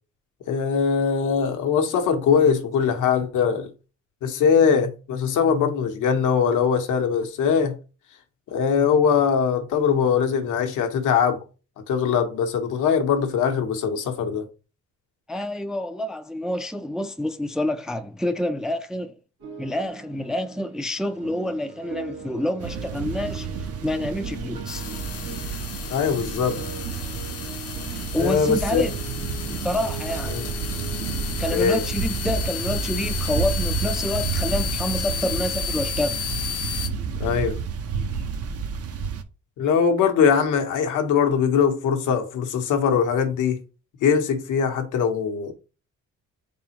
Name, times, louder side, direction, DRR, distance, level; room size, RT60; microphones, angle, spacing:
voice 1, 0.5-3.7 4.2-7.8 8.5-11.4 11.9-14.5 25.9-26.6 28.2-28.9 30.3-30.5 31.5-31.8 37.2-37.5 39.6-43.6 44.0-45.5, left 6 dB, 85° left, 0.9 m, -21 dB
voice 2, 15.3-19.2 19.6-24.9 28.1-28.9 29.6-30.5 31.4-36.2, left 1 dB, ahead, 0.3 m, -28 dB
sound 1, 19.4-33.5, right 5 dB, 90° right, 1.6 m, -41 dB
sound 2, 22.6-39.2, right 5 dB, 50° right, 0.6 m, -30 dB
sound 3, 24.7-36.9, left 9 dB, 55° left, 0.6 m, -33 dB
4.1 x 3.6 x 2.8 m
cardioid pair, 90°, 30 cm